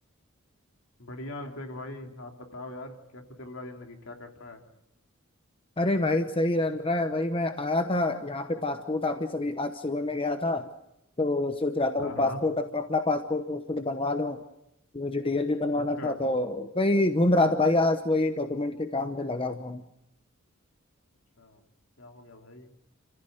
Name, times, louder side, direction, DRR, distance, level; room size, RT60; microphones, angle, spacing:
voice 1, 1.0-4.6 12.0-12.4 15.7-16.2 21.4-21.6 22.0-22.7, left 2 dB, 70° left, 3 dB, 3.1 m, -41 dB
voice 2, 5.8-10.7 11.2-14.4 14.9-19.8, left 2 dB, 25° left, 7 dB, 1.0 m, -27 dB
29.5 x 15.5 x 7.9 m, 0.85 s
head